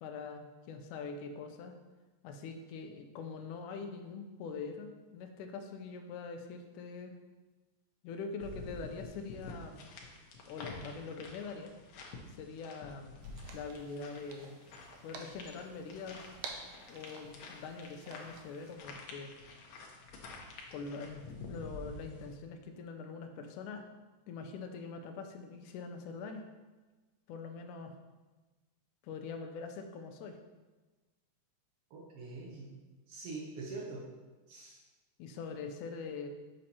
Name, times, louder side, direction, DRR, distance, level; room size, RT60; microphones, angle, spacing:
voice 1, 0.0-1.7 2.2-7.1 8.0-9.8 10.5-11.7 12.4-13.1 13.5-14.6 15.0-16.4 16.9-19.3 20.7-23.8 24.3-26.4 27.3-28.0 29.0-30.4 35.2-36.3, left 4 dB, 85° left, 5 dB, 2.1 m, -43 dB
sound 1, 8.4-22.4, left 2 dB, 70° left, 1.6 m, -49 dB
sound 2, 13.2-18.8, right 4 dB, 90° right, 1.3 m, -51 dB
voice 2, 31.9-32.7 33.1-34.0 34.5-34.8, right 3 dB, 65° right, -2 dB, 1.5 m, -44 dB
6.7 x 6.3 x 2.9 m, 1.2 s
omnidirectional pair, 3.6 m